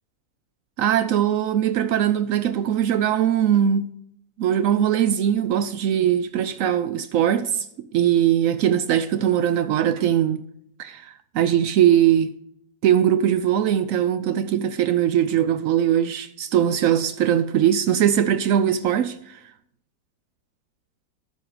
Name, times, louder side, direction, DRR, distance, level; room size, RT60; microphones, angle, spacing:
voice 1, 0.8-3.9 4.4-10.4 10.8-12.3 12.8-19.4, right 10 dB, 90° right, 0.7 m, -21 dB
12.5 x 6.7 x 4.8 m
omnidirectional pair, 2.0 m